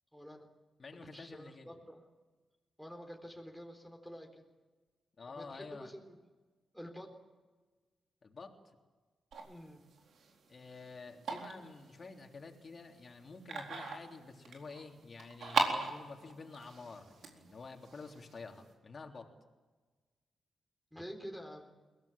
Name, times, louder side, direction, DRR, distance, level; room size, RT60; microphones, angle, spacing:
voice 1, 0.1-0.5 1.1-2.1 2.8-4.5 5.3-6.2 6.7-7.1 9.5-9.8 20.9-21.7, equal, ahead, 3 dB, 3.9 m, -48 dB
voice 2, 0.8-1.7 5.2-5.9 8.2-8.5 10.5-19.3, left 4 dB, 45° left, 2 dB, 3.4 m, -49 dB
sound 1, 9.3-18.7, right 4 dB, 75° right, 4.0 m, -40 dB
22.5 x 19.0 x 8.9 m, 1.3 s
cardioid pair, 85°, 0 cm